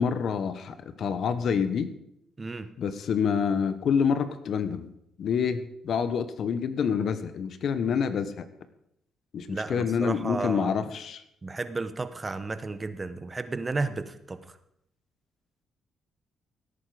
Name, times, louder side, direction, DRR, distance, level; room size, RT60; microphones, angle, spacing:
voice 1, 0.0-1.9 2.8-4.9 5.2-8.5 9.3-11.2, left 6 dB, 65° left, 12 dB, 1.2 m, -27 dB
voice 2, 2.4-2.7 9.5-10.7 11.4-14.4, right 3 dB, 25° right, 12 dB, 1.0 m, -33 dB
17.0 x 9.3 x 5.0 m, 0.77 s
cardioid pair, 90°, 0 cm